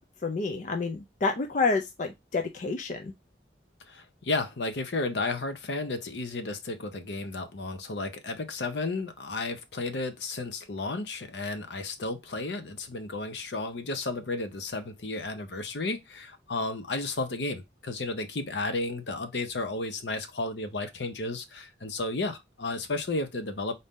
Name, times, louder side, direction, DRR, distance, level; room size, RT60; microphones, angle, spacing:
voice 1, 0.2-3.1, left 4 dB, 40° left, 0.4 m, -29 dB
voice 2, 3.9-23.7, left 2 dB, 70° left, 0.7 m, -33 dB
4.0 x 2.7 x 3.6 m
head